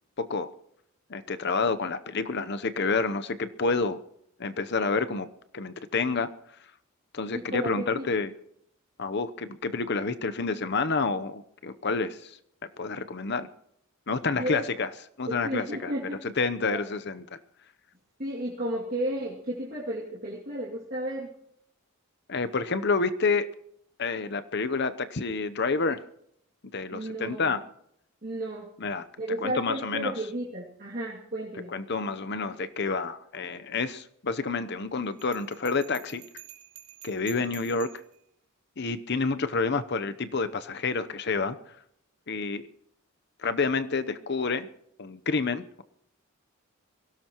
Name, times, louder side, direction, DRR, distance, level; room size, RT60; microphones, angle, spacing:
voice 1, 0.2-0.5 1.1-4.0 4.4-5.3 5.5-6.3 7.1-8.3 9.0-12.4 12.8-13.5 14.1-14.9 15.2-15.9 16.2-17.4 22.3-23.5 24.0-26.0 26.7-27.6 28.8-29.0 29.4-30.1 31.7-36.2 37.0-37.9 38.8-41.6 42.3-42.6 43.4-44.7 45.0-45.8, left 4 dB, 50° left, 11 dB, 0.8 m, -29 dB
voice 2, 7.3-8.1 14.3-14.7 15.3-16.2 16.7-16.8 18.2-21.3 26.9-27.5 28.2-28.7 29.2-31.7, right 1 dB, 45° right, -5 dB, 2.6 m, -33 dB
Bell, 35.2-38.2, right 11 dB, 75° right, 2.3 m, -48 dB
23.5 x 17.0 x 3.0 m, 0.72 s
head